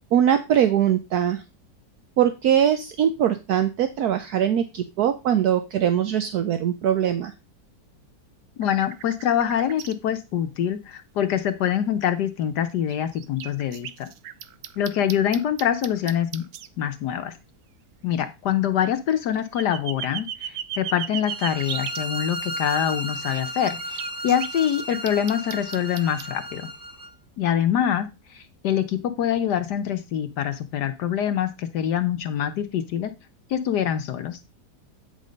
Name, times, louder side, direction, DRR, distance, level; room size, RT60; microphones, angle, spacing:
voice 1, 0.1-1.4 2.2-7.3, right 9 dB, 65° right, 9 dB, 1.2 m, -22 dB
voice 2, 8.6-14.1 14.8-16.4 16.8-17.3 18.0-26.7 27.4-33.1 33.5-34.4, left 9 dB, 75° left, 10 dB, 1.4 m, -25 dB
sound 1, 8.6-9.9 12.1-12.2 12.9-16.7 19.1-22.0 22.9-26.3, right 10 dB, 85° right, 1.4 m, -36 dB
sound 2, 21.2-27.1, equal, 20° right, 0.6 m, -34 dB
9.2 x 5.4 x 5.1 m, 0.26 s
omnidirectional pair, 1.8 m